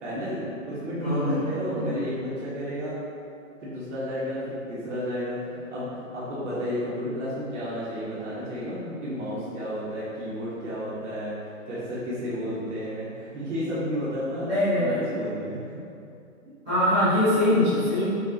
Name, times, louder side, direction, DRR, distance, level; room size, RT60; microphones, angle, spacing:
voice 1, 0.0-3.0 3.6-11.3 11.7-14.5 14.7-15.6, equal, 60° right, -9 dB, 1.3 m, -32 dB
voice 2, 1.0-1.4 1.7-1.9 14.4-15.1 16.6-18.1, left 1 dB, 5° right, -24 dB, 0.4 m, -23 dB
6.8 x 2.4 x 2.8 m, 2.6 s
hypercardioid pair, 160°, 41 cm